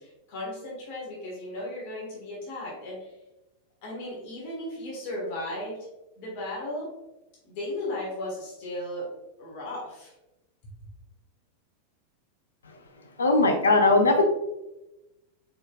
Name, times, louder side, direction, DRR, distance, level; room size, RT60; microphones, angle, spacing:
voice 1, 0.0-3.1 3.8-5.9 6.2-6.9 7.4-9.1 9.4-10.1, left 1 dB, 45° left, -4 dB, 1.5 m, -35 dB
voice 2, 13.2-14.2, left 2 dB, 70° left, 3 dB, 0.7 m, -19 dB
4.6 x 4.2 x 2.3 m, 0.95 s
figure-of-eight pair, 90°, 0 cm